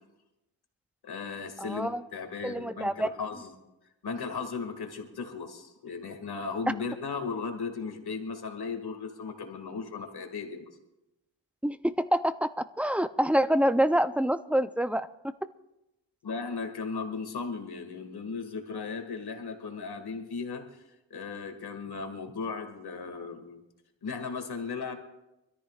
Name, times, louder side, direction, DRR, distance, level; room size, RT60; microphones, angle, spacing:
voice 1, 1.0-3.5 4.0-10.8 16.2-20.8 21.1-23.6 24.0-24.9, left 5 dB, 60° left, 4 dB, 2.2 m, -36 dB
voice 2, 1.6-2.0 2.4-3.1 11.6-12.5 12.8-15.1, equal, 5° right, 12 dB, 0.5 m, -26 dB
25.5 x 13.5 x 2.4 m, 0.94 s
cardioid pair, 85°, 44 cm